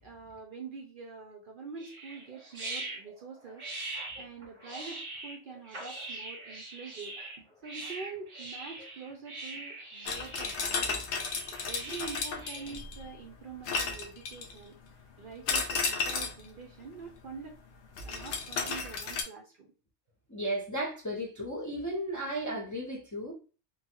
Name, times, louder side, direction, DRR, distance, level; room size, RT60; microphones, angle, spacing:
voice 1, 0.0-3.6 4.2-7.2 7.6-11.0 11.5-14.8 15.2-17.6 18.0-19.7, right 5 dB, 60° right, 0.6 m, -45 dB
sound 1, 1.8-12.7, right 2 dB, 30° right, 0.9 m, -42 dB
sound 2, 10.1-13.1 13.7-14.6 15.5-16.5 18.0-19.2, left 4 dB, 70° left, 0.9 m, -33 dB
voice 2, 20.3-23.3, right 1 dB, 20° left, 0.6 m, -34 dB
3.1 x 2.3 x 2.7 m
omnidirectional pair, 1.2 m